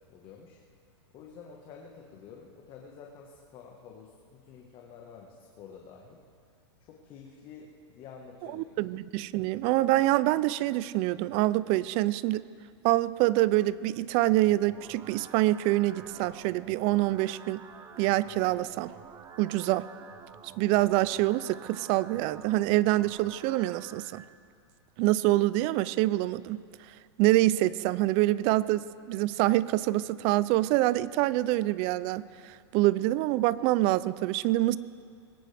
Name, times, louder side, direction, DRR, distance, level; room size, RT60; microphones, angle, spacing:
voice 1, 0.1-0.6 1.1-6.2 6.8-8.9, left 6 dB, 35° left, 0 dB, 1.5 m, -49 dB
voice 2, 8.5-12.4 12.8-17.6 18.0-18.9 19.4-19.8 20.6-24.2 25.0-26.6 27.2-34.8, right 17 dB, 40° right, 18 dB, 0.4 m, -26 dB
sound 1, 14.3-24.3, right 6 dB, 25° right, 1.0 m, -50 dB
21.0 x 17.0 x 3.5 m, 2.2 s
hypercardioid pair, 130°, 15 cm